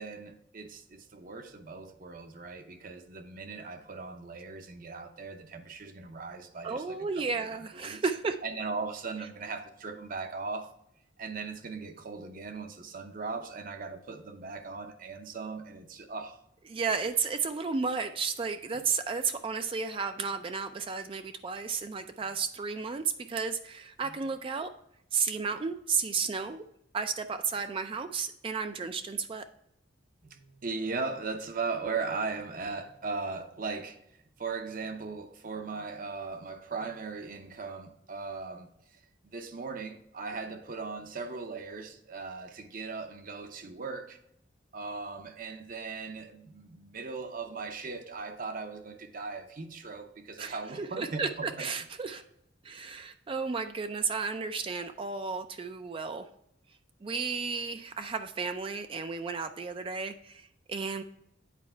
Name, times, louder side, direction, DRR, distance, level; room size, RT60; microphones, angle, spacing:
voice 1, 0.0-8.0 8.4-10.7 11.2-16.4 24.0-24.2 30.2-39.0 39.3-44.2 44.7-51.7, right 4 dB, 45° right, 0.7 m, -38 dB
voice 2, 6.6-8.4 16.7-24.7 25.1-26.6 26.9-29.5 50.4-52.2 52.6-56.2 57.0-61.0, right 5 dB, 30° right, 0.3 m, -33 dB
8.4 x 4.4 x 4.4 m
head